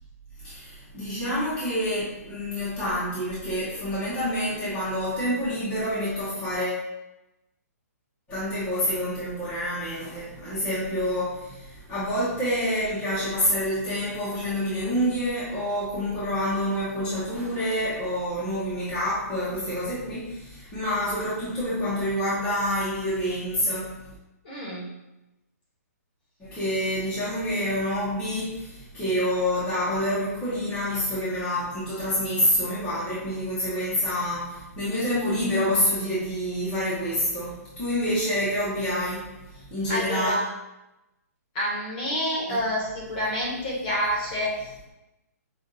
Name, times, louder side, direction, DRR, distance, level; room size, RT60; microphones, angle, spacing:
voice 1, 0.4-6.8 8.3-23.9 26.4-39.3 39.7-40.4 42.5-42.6, equal, 10° left, -11 dB, 0.9 m, -27 dB
voice 2, 24.4-24.9 39.9-40.4 41.5-44.9, equal, 30° left, -4 dB, 1.1 m, -28 dB
5.2 x 2.5 x 2.6 m, 0.95 s
hypercardioid pair, 170°, 9 cm